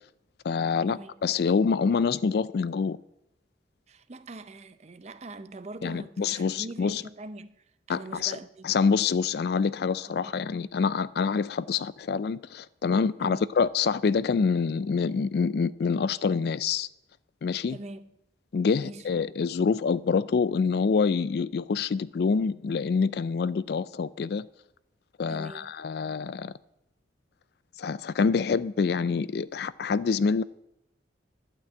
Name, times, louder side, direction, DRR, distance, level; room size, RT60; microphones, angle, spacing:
voice 1, 0.4-3.0 5.8-7.0 7.9-8.4 8.6-16.9 17.4-17.8 18.5-24.5 25.2-26.5 27.8-30.4, left 5 dB, 55° left, 0.3 m, -26 dB
voice 2, 3.9-7.6 7.9-8.7 13.2-13.5 17.7-18.1 18.8-19.1 25.3-25.7, right 2 dB, 35° right, 0.5 m, -42 dB
11.5 x 6.1 x 8.7 m
head